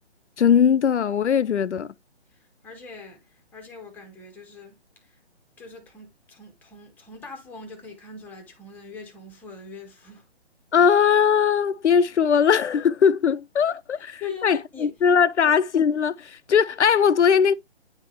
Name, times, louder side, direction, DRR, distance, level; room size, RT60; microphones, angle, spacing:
voice 1, 0.4-1.9 10.7-17.5, left 7 dB, 85° left, 0.6 m, -20 dB
voice 2, 2.3-5.2 5.6-10.3 14.2-15.0 15.4-15.6, left 5 dB, 5° left, 0.9 m, -41 dB
9.6 x 3.5 x 2.9 m
figure-of-eight pair, 150°, 34 cm